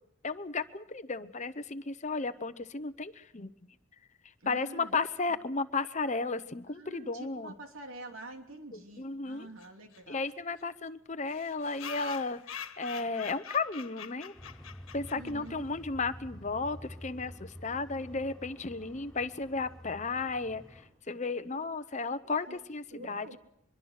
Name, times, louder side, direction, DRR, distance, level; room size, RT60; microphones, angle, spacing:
voice 1, 0.2-3.5 4.5-7.5 8.7-9.5 10.1-14.3 14.9-20.6 21.1-23.4, left 3 dB, 35° left, 11 dB, 0.8 m, -34 dB
voice 2, 4.4-5.0 5.3-5.4 6.7-10.2 15.1-15.6 21.9-22.0 22.5-22.6 22.9-23.4, right 1 dB, 80° right, 4 dB, 2.9 m, -47 dB
sound 1, 9.6-9.7 9.9-10.0 10.3-10.4 10.6-10.7 11.3-15.5, left 8 dB, 80° left, 1.5 m, -44 dB
sound 2, 14.3-20.9, equal, ahead, 5.7 m, -49 dB
24.0 x 22.5 x 6.5 m, 0.77 s
head